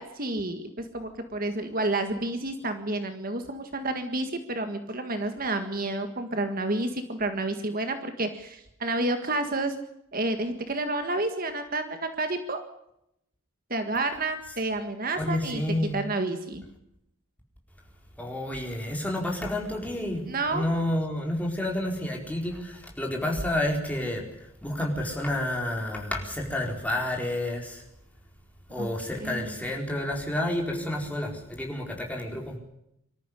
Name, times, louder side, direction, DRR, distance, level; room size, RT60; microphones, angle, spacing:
voice 1, 0.0-9.8 10.1-12.6 13.7-15.6 15.9-16.6 20.3-20.7 28.8-28.9 29.2-29.7, right 2 dB, 40° right, 7 dB, 1.8 m, -30 dB
voice 2, 15.2-16.0 18.2-20.2 20.5-24.2 24.6-27.8 28.7-32.6, left 1 dB, 5° left, -1 dB, 4.5 m, -30 dB
25.0 x 14.0 x 10.0 m, 0.80 s
head